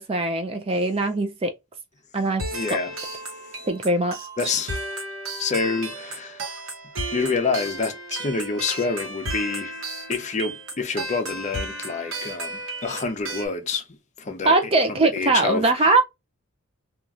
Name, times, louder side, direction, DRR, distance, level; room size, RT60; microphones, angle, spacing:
voice 1, 0.0-1.5 2.1-2.8 3.7-4.2 14.4-16.0, right 2 dB, 25° right, 0.4 m, -21 dB
sound 1, 2.4-13.5, right 1 dB, 75° right, 1.0 m, -34 dB
voice 2, 2.5-2.9 4.4-4.8 5.4-6.6 7.1-9.7 10.1-13.8 14.2-14.5 14.9-16.0, left 4 dB, 35° left, 0.5 m, -27 dB
3.0 x 2.4 x 2.4 m
head